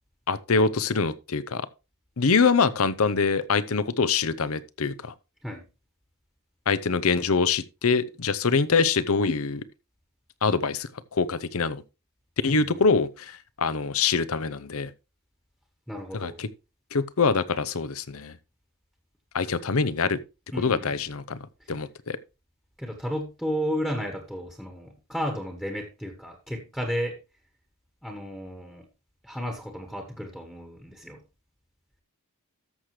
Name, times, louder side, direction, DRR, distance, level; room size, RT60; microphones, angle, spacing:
voice 1, 0.3-1.7 2.2-5.1 6.7-9.6 10.4-11.8 12.4-14.9 16.1-16.5 16.9-18.3 19.3-20.2 20.6-21.4 21.7-22.2, left 4 dB, 70° left, 0.7 m, -24 dB
voice 2, 12.5-12.8 15.9-16.4 20.5-21.0 22.8-27.2 28.0-28.8 29.2-31.2, equal, 5° left, 1.3 m, -33 dB
13.5 x 6.6 x 3.2 m
head